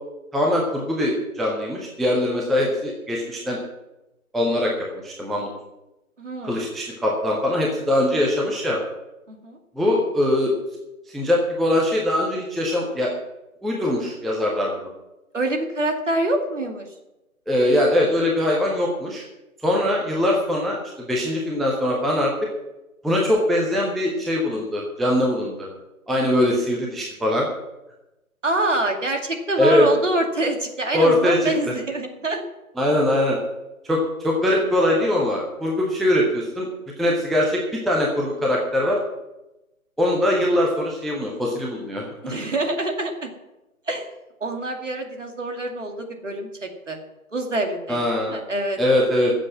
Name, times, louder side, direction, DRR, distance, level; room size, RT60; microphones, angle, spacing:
voice 1, 0.3-3.6 4.3-5.5 6.4-8.8 9.7-10.5 11.1-13.1 13.6-14.9 17.5-19.2 19.6-22.5 23.0-25.7 26.1-27.5 29.6-29.9 30.9-31.5 32.8-33.4 33.8-34.0 34.2-36.7 37.0-39.0 40.0-42.4 47.9-48.4 48.8-49.3, left 1 dB, ahead, -2 dB, 0.6 m, -22 dB
voice 2, 6.2-6.6 9.3-9.6 15.3-16.9 28.4-32.4 42.2-43.3 43.9-44.1 44.4-47.0 47.3-48.0 48.3-48.8, right 2 dB, 55° right, 3 dB, 2.4 m, -25 dB
15.0 x 7.6 x 6.1 m, 0.97 s
figure-of-eight pair, 175°, 43 cm